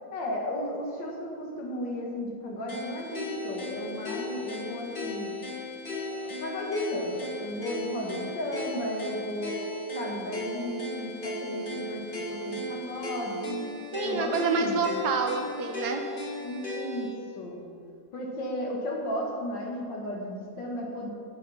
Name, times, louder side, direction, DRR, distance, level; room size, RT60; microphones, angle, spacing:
voice 1, 0.1-5.3 6.1-9.6 9.9-13.6 14.0-14.8 16.4-17.1 17.4-17.6 18.1-21.1, left 1 dB, 80° left, -1 dB, 2.4 m, -34 dB
sound 1, 2.7-17.1, left 1 dB, 30° left, 1.4 m, -36 dB
voice 2, 13.9-16.0, right 4 dB, 65° right, 6 dB, 1.4 m, -28 dB
10.5 x 6.8 x 5.6 m, 2.5 s
omnidirectional pair, 1.9 m